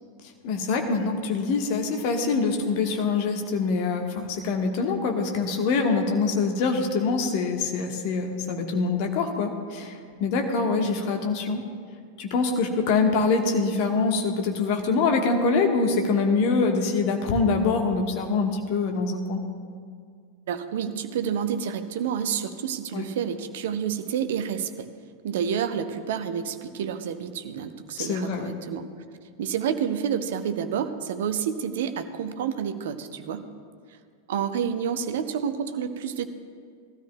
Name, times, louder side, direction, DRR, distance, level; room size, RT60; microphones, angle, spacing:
voice 1, 0.4-11.6 12.2-19.4 22.9-23.1 28.0-28.5, left 4 dB, 45° left, 3 dB, 1.2 m, -24 dB
voice 2, 20.5-24.9 25.2-28.9 29.4-33.5 34.3-36.3, right 8 dB, 55° right, 10 dB, 0.7 m, -29 dB
19.0 x 13.0 x 2.2 m, 2.1 s
figure-of-eight pair, 90°, 0 cm